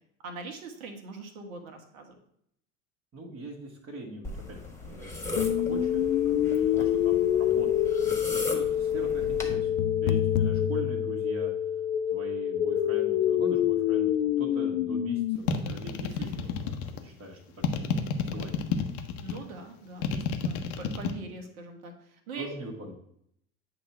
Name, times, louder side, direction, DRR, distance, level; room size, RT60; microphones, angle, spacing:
voice 1, 0.2-2.2 16.1-16.5 19.2-22.5, right 3 dB, 70° right, 4 dB, 1.5 m, -42 dB
voice 2, 3.1-9.7 10.0-11.5 12.1-15.2 15.5-19.3 22.3-22.9, right 1 dB, 30° right, -2 dB, 1.6 m, -42 dB
sound 1, 4.2-9.5, left 1 dB, 5° left, 1.5 m, -38 dB
sound 2, 5.4-15.4, left 10 dB, 70° left, 0.6 m, -26 dB
sound 3, 15.5-17.0 17.6-19.4 20.0-21.1, left 7 dB, 55° left, 1.0 m, -29 dB
8.6 x 3.0 x 5.7 m, 0.71 s
hypercardioid pair, 75°, 43 cm